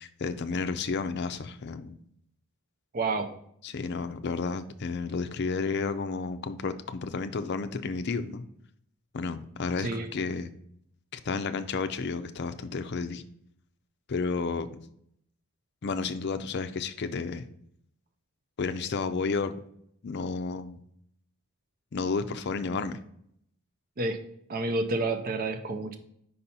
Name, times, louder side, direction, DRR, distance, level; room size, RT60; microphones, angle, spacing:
voice 1, 0.0-1.9 3.6-8.4 9.1-10.5 11.1-13.2 14.1-14.7 15.8-17.4 18.6-19.5 20.0-20.8 21.9-23.0, left 4 dB, 50° left, 10 dB, 0.5 m, -31 dB
voice 2, 2.9-3.3 9.8-10.1 24.0-24.2 24.5-26.0, right 2 dB, 40° right, 7 dB, 0.5 m, -29 dB
5.4 x 4.2 x 5.4 m, 0.70 s
head